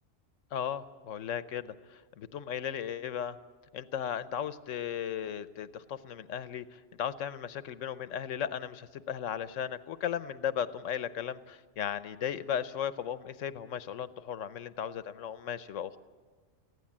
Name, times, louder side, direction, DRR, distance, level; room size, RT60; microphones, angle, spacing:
voice 1, 0.5-3.4 3.7-16.0, left 9 dB, 75° left, 14 dB, 1.1 m, -36 dB
21.5 x 15.5 x 8.6 m, 1.5 s
omnidirectional pair, 1.3 m